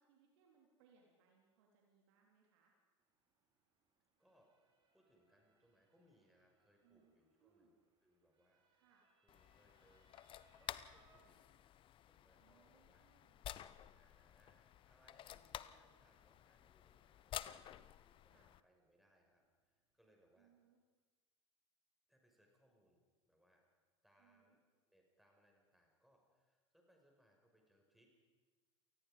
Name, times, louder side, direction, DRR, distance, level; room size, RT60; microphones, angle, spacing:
voice 1, 0.0-2.7 6.8-7.1 7.4-7.7 8.7-9.0 12.4-13.4 17.4-17.7 18.2-18.5 20.4-20.8 24.2-24.6, right 6 dB, 60° right, -1 dB, 3.7 m, -73 dB
Motor vehicle (road) / Siren, 3.0-20.4, right 4 dB, 30° right, 5.7 m, -80 dB
voice 2, 4.2-4.5 4.9-7.8 8.0-8.6 9.2-10.1 10.6-11.4 12.1-13.1 13.9-17.7 18.0-20.5 22.1-23.0 23.2-23.6 24.0-24.6 24.9-28.2, equal, ahead, 1 dB, 5.8 m, -74 dB
sound 1, 9.3-18.6, left 12 dB, 35° left, 0.7 m, -53 dB
28.5 x 19.5 x 5.2 m, 1.4 s
figure-of-eight pair, 80°, 15 cm